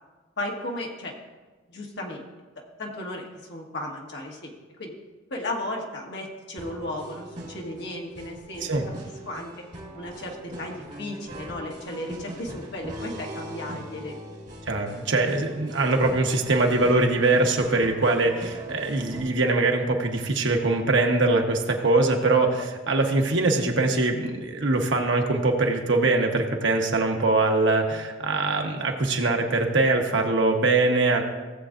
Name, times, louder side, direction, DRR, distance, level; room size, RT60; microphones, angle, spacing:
voice 1, 0.4-1.1 1.7-2.2 2.8-4.5 4.8-4.9 5.3-8.7 9.0-9.5 10.0-14.2, left 1 dB, 60° left, 0 dB, 1.5 m, -35 dB
sound 1, 6.6-19.2, equal, 40° right, 1.9 m, -41 dB
voice 2, 14.7-31.2, right 2 dB, 65° right, 3 dB, 1.1 m, -22 dB
16.5 x 7.7 x 2.5 m, 1.3 s
head